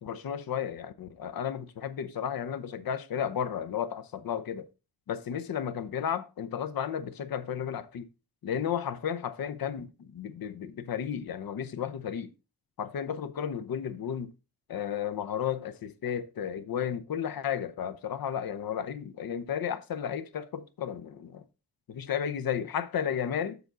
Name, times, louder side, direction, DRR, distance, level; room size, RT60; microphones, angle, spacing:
voice 1, 0.0-4.7 5.1-8.1 8.4-12.3 12.8-14.3 14.7-21.4 21.9-23.6, left 8 dB, 60° left, 0.8 m, -33 dB
7.0 x 6.7 x 3.8 m
wide cardioid pair, 160°, 40 cm